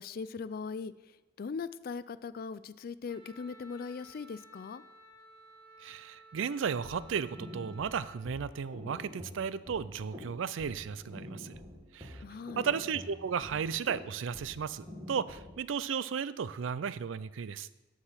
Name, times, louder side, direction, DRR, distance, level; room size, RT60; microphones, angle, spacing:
voice 1, 0.0-4.8 12.2-12.7, left 5 dB, 50° left, 15 dB, 0.3 m, -40 dB
Wind instrument woodwind instrument, 3.1-8.2, right 1 dB, 25° left, 1.4 m, -56 dB
voice 2, 5.8-11.5 11.9-12.2 12.6-17.7, right 6 dB, 80° right, 16 dB, 0.4 m, -34 dB
sound 1, 6.8-15.7, left 1 dB, 20° right, 1.8 m, -47 dB
13.0 x 4.9 x 5.7 m, 1.0 s
head